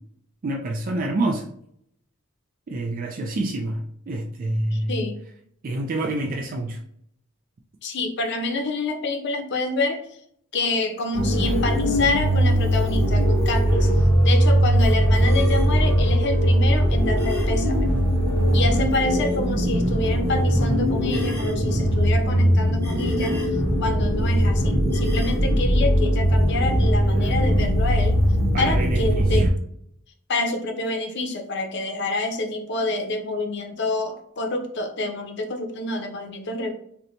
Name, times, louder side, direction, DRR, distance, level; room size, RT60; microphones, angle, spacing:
voice 1, 0.4-1.5 2.7-5.0 5.6-6.8 28.5-29.5, right 2 dB, 40° right, 1 dB, 0.4 m, -27 dB
voice 2, 4.7-5.2 7.8-10.0 10.5-13.9 14.2-17.9 18.5-23.5 23.8-28.2 28.6-29.6 30.3-36.7, left 2 dB, 55° left, 5 dB, 0.6 m, -27 dB
sound 1, 11.1-29.5, equal, 15° left, 0.9 m, -20 dB
3.9 x 2.2 x 2.8 m, 0.69 s
head